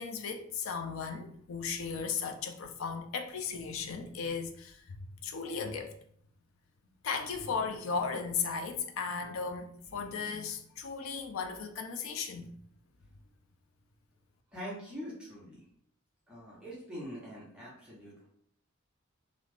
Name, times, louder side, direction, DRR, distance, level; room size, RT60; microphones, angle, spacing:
voice 1, 0.0-5.0 5.2-6.0 7.0-12.5, left 5 dB, 75° left, 0.4 m, -36 dB
voice 2, 14.5-15.6 16.3-18.3, equal, 5° right, 0.9 m, -44 dB
2.5 x 2.4 x 3.3 m
head